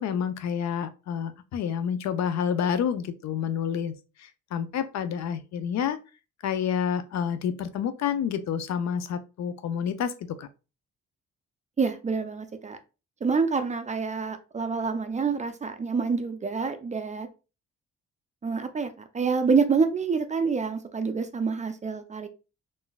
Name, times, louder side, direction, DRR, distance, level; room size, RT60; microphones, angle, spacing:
voice 1, 0.0-3.9 4.5-6.0 6.4-10.1 10.4-10.5, left 8 dB, 65° left, 0.5 m, -28 dB
voice 2, 11.8-12.8 13.2-17.3 18.4-22.3, right 5 dB, 25° right, 0.4 m, -27 dB
3.7 x 2.6 x 2.3 m
cardioid pair, 90°, 30 cm